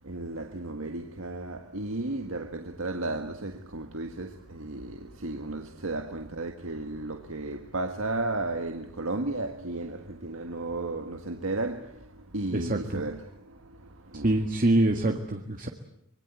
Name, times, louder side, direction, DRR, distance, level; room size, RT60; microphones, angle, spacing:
voice 1, 0.0-14.4, right 2 dB, 85° right, 1.7 m, -34 dB
voice 2, 12.5-13.0 14.2-15.7, right 1 dB, 40° right, 1.8 m, -25 dB
25.5 x 22.5 x 8.3 m
head